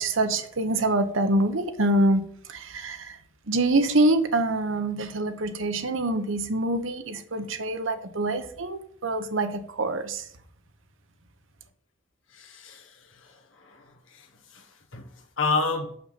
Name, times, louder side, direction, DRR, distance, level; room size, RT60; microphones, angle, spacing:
voice 1, 0.0-3.2 3.5-10.3, right 2 dB, 85° right, 1.1 m, -25 dB
voice 2, 12.3-16.0, left 4 dB, 90° left, 1.5 m, -32 dB
6.8 x 5.7 x 5.8 m
head